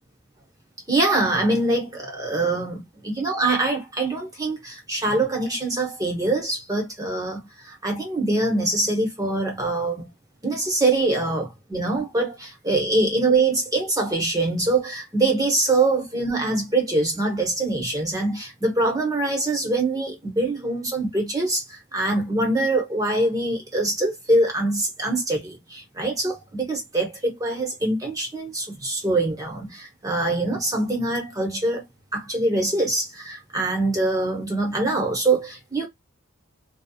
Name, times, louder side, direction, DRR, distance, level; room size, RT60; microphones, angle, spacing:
voice 1, 0.9-10.1 10.4-31.8 32.1-35.9, right 2 dB, 15° right, 1.0 m, -24 dB
2.7 x 2.2 x 2.3 m
head